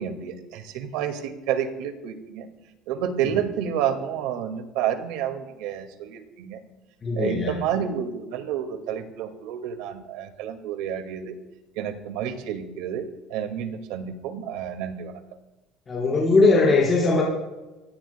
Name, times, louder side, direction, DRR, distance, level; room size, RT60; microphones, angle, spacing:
voice 1, 0.0-2.5 2.9-6.6 7.1-11.3 11.8-15.2, right 9 dB, 85° right, 6 dB, 2.0 m, -30 dB
voice 2, 7.0-7.5 15.9-17.2, left 3 dB, 20° left, -7 dB, 4.7 m, -19 dB
26.5 x 17.0 x 2.2 m, 1.1 s
cardioid pair, 165°, 0 cm